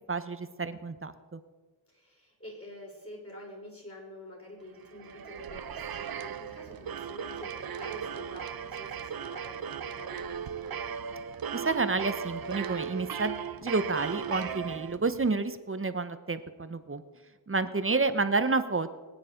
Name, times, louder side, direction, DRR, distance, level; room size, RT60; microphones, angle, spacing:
voice 1, 0.1-1.4 11.5-17.0 17.5-18.9, right 3 dB, 30° right, 11 dB, 1.0 m, -30 dB
voice 2, 1.9-10.7 17.7-18.0, left 1 dB, 30° left, -3 dB, 5.9 m, -47 dB
sound 1, 4.8-15.3, right 7 dB, 50° right, 0.8 m, -37 dB
22.0 x 9.5 x 5.2 m, 1.3 s
wide cardioid pair, 75°, 46 cm